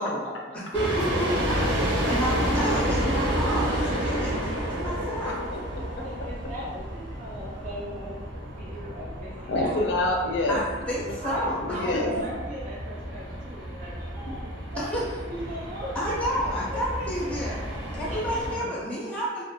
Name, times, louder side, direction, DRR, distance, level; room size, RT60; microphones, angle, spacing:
voice 1, 0.0-0.6 1.3-2.4 2.9-3.3 4.0-4.1 6.0-8.2 8.6-9.9 11.2-11.4 11.7-16.2 17.0-17.1 17.5-17.6 18.1-18.4, equal, 45° right, -6 dB, 0.5 m, -38 dB
voice 2, 0.7-1.6 2.1-4.3 4.7-5.4 10.5-10.6 10.9-11.8 14.9-15.0 16.0-17.6 17.9-19.4, equal, 5° left, -6 dB, 0.4 m, -29 dB
sound 1, 0.7-18.6, right 1 dB, 85° right, 0.6 m, -31 dB
voice 3, 5.2-6.0 9.5-10.6 11.1-11.2 11.6-12.1 14.3-14.4 18.6-18.7, left 2 dB, 75° left, 1 dB, 0.4 m, -27 dB
2.4 x 2.0 x 2.7 m, 1.3 s
head